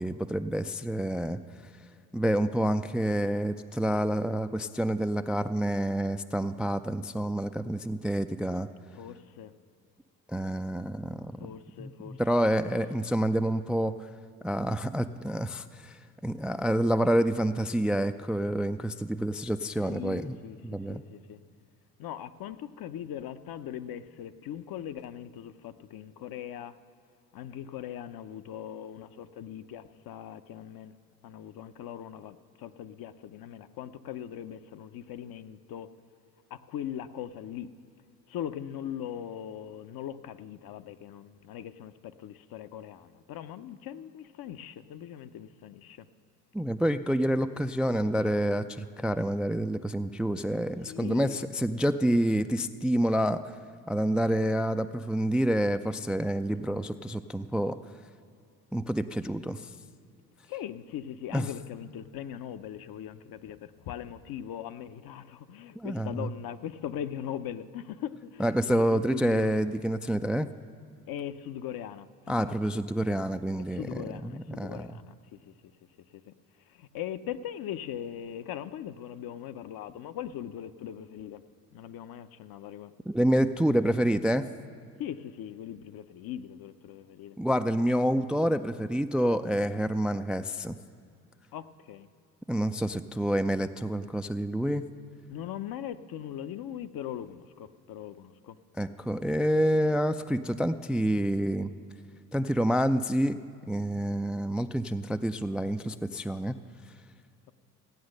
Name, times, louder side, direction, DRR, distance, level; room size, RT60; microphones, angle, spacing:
voice 1, 0.0-1.4 2.1-8.7 10.3-11.3 11.8-14.1 14.4-20.4 20.6-21.0 46.5-53.4 53.9-57.8 58.7-59.7 61.3-61.5 65.8-66.3 68.4-70.5 72.3-75.0 83.1-84.5 87.4-90.8 92.5-94.8 98.7-101.7 102.3-103.4 103.7-106.6, equal, ahead, 10 dB, 0.4 m, -28 dB
voice 2, 8.9-9.5 11.4-12.5 12.7-12.8 19.9-20.6 20.9-21.4 22.0-26.8 27.3-31.0 31.2-35.9 36.5-37.7 38.3-46.1 50.9-51.5 60.5-69.5 71.1-72.6 73.7-75.2 75.5-75.6 76.1-76.3 76.7-81.4 81.7-82.9 85.0-87.4 91.5-92.1 95.3-98.6, left 10 dB, 50° left, 12 dB, 0.9 m, -40 dB
16.0 x 9.4 x 6.5 m, 2.4 s
hypercardioid pair, 60°, 45 cm